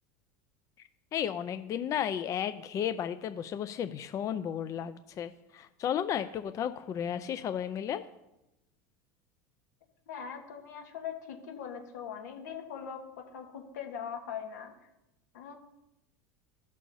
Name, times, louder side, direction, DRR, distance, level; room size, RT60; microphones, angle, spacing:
voice 1, 1.1-8.0, left 9 dB, 35° left, 12 dB, 0.5 m, -33 dB
voice 2, 10.1-14.7 15.3-15.6, left 7 dB, 85° left, 3 dB, 1.7 m, -41 dB
15.5 x 6.4 x 2.7 m, 0.92 s
supercardioid pair, 110°, 9 cm